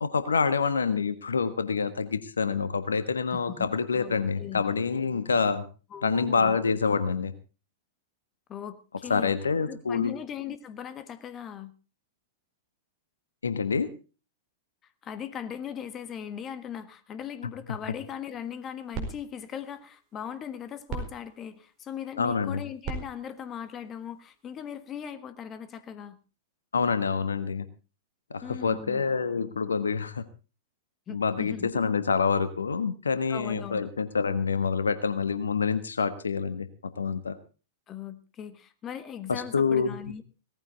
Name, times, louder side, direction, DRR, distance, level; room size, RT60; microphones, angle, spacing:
voice 1, 0.0-5.6 6.0-7.3 9.1-10.1 13.4-13.9 22.2-22.6 26.7-27.7 28.3-30.2 31.1-37.4 39.3-40.0, left 5 dB, 80° left, 12 dB, 1.3 m, -27 dB
voice 2, 3.3-4.6 5.9-6.6 8.5-9.4 9.7-11.7 15.0-26.2 28.4-29.1 31.1-31.7 33.3-33.9 37.9-40.2, left 8 dB, 25° left, 12 dB, 1.5 m, -39 dB
sound 1, 18.4-24.8, right 5 dB, 35° right, 4.6 m, -42 dB
18.0 x 14.0 x 3.9 m, 0.34 s
figure-of-eight pair, 100°, 0 cm